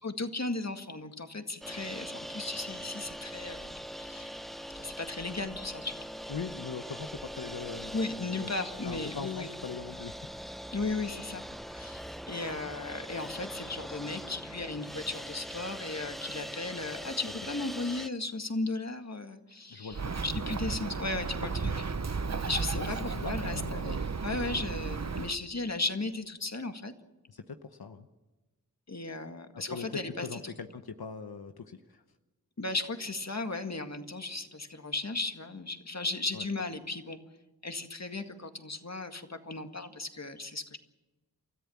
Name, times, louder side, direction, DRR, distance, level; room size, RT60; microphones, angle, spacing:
voice 1, 0.0-4.4 4.8-6.1 7.9-9.5 10.7-11.4 11.7-21.7 22.5-24.0 24.2-26.9 28.9-30.5 32.6-37.2 37.6-40.8, left 3 dB, 45° left, 6 dB, 1.9 m, -36 dB
sound 1, 1.6-18.1, equal, ahead, 0.8 m, -42 dB
voice 2, 6.3-7.9 8.2-8.5 8.8-10.1 19.7-20.2 22.7-24.0 27.3-28.1 29.5-32.0 36.3-36.4, left 5 dB, 85° left, 7 dB, 0.9 m, -41 dB
Bird, 19.9-25.4, right 5 dB, 45° right, 0.9 m, -34 dB
29.5 x 14.0 x 7.2 m, 1.2 s
wide cardioid pair, 45°, 36 cm